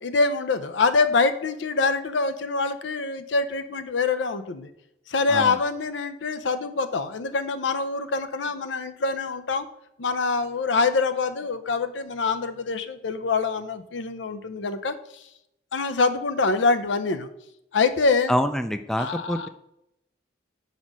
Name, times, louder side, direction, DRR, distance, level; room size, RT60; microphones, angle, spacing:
voice 1, 0.0-4.7 5.1-9.7 10.0-15.0 15.7-17.3 17.7-18.3 19.0-19.5, left 4 dB, 85° left, 11 dB, 0.6 m, -25 dB
voice 2, 18.3-19.5, equal, 5° left, 9 dB, 0.3 m, -26 dB
5.2 x 4.3 x 6.0 m, 0.82 s
head